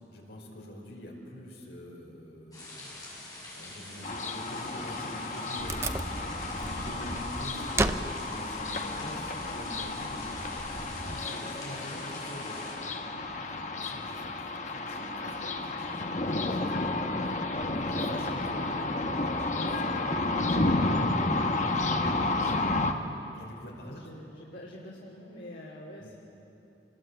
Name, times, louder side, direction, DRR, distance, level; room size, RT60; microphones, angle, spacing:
voice 1, 0.1-2.9 3.5-5.9 6.4-12.7 13.3-21.3 21.7-22.9 23.3-24.1 26.0-26.1, equal, 70° left, 0 dB, 5.0 m, -45 dB
sound 1, 2.5-12.7, left 2 dB, 20° left, 6.9 m, -45 dB
sound 2, 4.0-22.9, left 2 dB, 40° left, 1.2 m, -31 dB
Wood, 5.6-11.3, right 2 dB, 15° right, 0.5 m, -36 dB
voice 2, 8.7-9.4 20.3-20.5 23.8-26.2, left 1 dB, 90° left, -5 dB, 3.1 m, -46 dB
26.0 x 20.5 x 8.1 m, 3.0 s
head